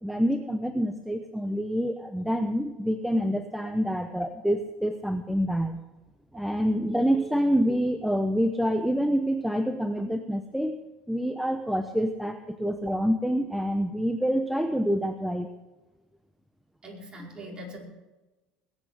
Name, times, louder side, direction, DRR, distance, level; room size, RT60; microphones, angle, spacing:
voice 1, 0.0-5.8 6.3-10.8 11.1-15.5, equal, ahead, 7 dB, 0.9 m, -27 dB
voice 2, 16.8-17.8, equal, 25° right, -2 dB, 4.9 m, -41 dB
21.0 x 9.0 x 4.9 m, 1.1 s
supercardioid pair, 100°, 4 cm